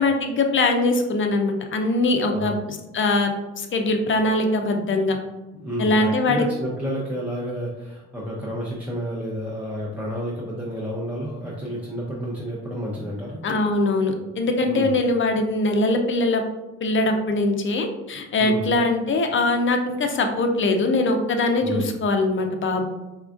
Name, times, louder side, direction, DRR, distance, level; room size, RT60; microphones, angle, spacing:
voice 1, 0.0-3.3 3.6-5.2 5.8-6.4 13.4-16.4 16.8-22.8, left 2 dB, 40° left, 4 dB, 0.5 m, -22 dB
voice 2, 5.5-13.4 14.7-14.9 18.4-18.7 21.6-21.9, equal, 5° right, -6 dB, 0.6 m, -30 dB
4.3 x 2.4 x 2.4 m, 1.0 s
cardioid pair, 90°, 30 cm